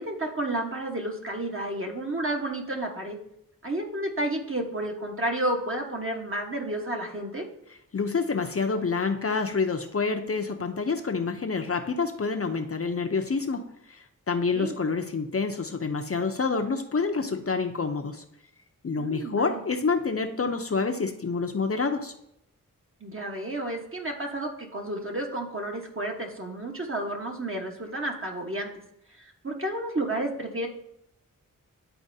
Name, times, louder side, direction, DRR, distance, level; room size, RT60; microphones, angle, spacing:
voice 1, 0.0-3.2 3.6-7.4 14.5-14.8 19.0-19.6 23.0-28.7 29.2-30.7, right 1 dB, 40° right, 1 dB, 1.3 m, -31 dB
voice 2, 7.9-18.2 18.8-22.1, left 4 dB, 40° left, 5 dB, 0.6 m, -28 dB
11.0 x 4.3 x 2.7 m, 0.78 s
wide cardioid pair, 60°, 34 cm